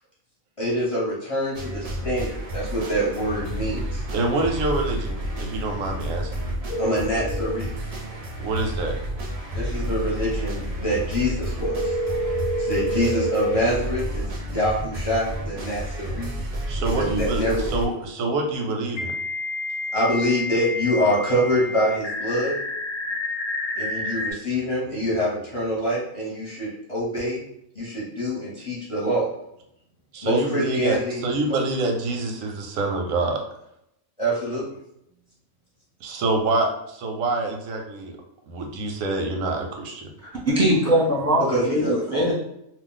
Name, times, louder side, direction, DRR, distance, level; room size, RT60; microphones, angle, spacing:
voice 1, 0.6-4.0 6.8-7.7 9.5-12.0 12.6-16.3 16.8-17.7 19.9-22.5 23.8-27.4 27.7-29.3 30.2-31.2 31.5-31.6 34.2-34.6 41.5-42.3, equal, 30° left, -7 dB, 0.8 m, -25 dB
sound 1, 1.5-17.9, equal, 50° right, 0.4 m, -31 dB
voice 2, 4.1-6.5 8.4-8.9 16.7-19.1 30.1-33.4 36.0-38.2 38.5-40.0, right 2 dB, 90° right, 2 dB, 1.0 m, -26 dB
sound 2, 6.7-7.6 11.6-13.6 16.2-16.3 19.0-24.3, equal, 50° left, 0.4 m, -28 dB
voice 3, 40.2-42.3, right 1 dB, 15° right, -5 dB, 0.8 m, -21 dB
2.4 x 2.2 x 3.8 m, 0.77 s
omnidirectional pair, 1.4 m